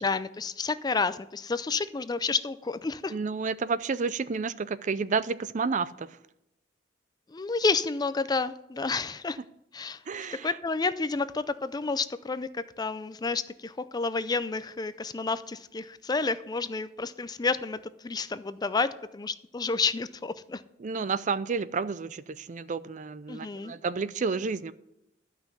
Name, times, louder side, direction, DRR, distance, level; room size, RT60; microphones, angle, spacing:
voice 1, 0.0-3.1 7.3-9.4 9.7-10.0 10.4-20.6 23.3-23.7, left 4 dB, 20° left, 0.4 m, -30 dB
voice 2, 3.1-6.1 10.1-10.5 20.8-24.7, right 5 dB, 45° right, 0.4 m, -30 dB
12.5 x 5.9 x 8.0 m
head